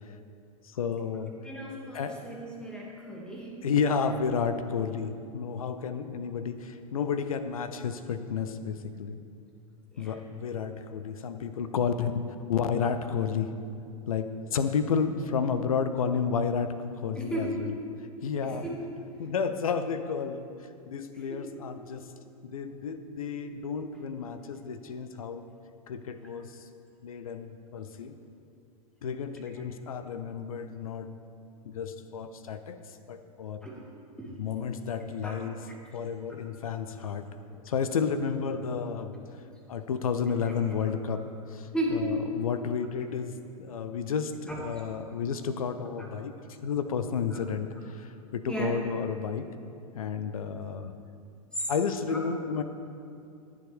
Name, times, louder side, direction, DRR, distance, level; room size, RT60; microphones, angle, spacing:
voice 1, 0.6-1.3 1.9-2.2 3.6-9.2 10.0-12.2 12.5-13.5 14.1-17.7 18.2-18.7 19.2-20.5 20.9-22.1 22.4-25.4 25.9-26.7 27.0-28.1 29.0-31.1 31.6-32.8 33.1-33.7 34.4-35.7 35.9-37.3 37.6-39.1 39.7-49.5 49.9-50.9 51.7-52.6, left 6 dB, 65° left, 10 dB, 0.7 m, -31 dB
voice 2, 1.4-3.6 9.9-10.1 17.2-17.7 18.4-18.7 21.1-21.5 33.6-33.8 34.2-34.3 35.2-35.3 40.4-40.7 41.7-42.1 44.5-44.8 46.0-46.1 47.3-47.4 48.5-48.8 51.5-51.7 52.1-52.2, right 1 dB, 5° left, -3 dB, 2.1 m, -35 dB
21.0 x 7.2 x 3.4 m, 2.5 s
figure-of-eight pair, 95°, 19 cm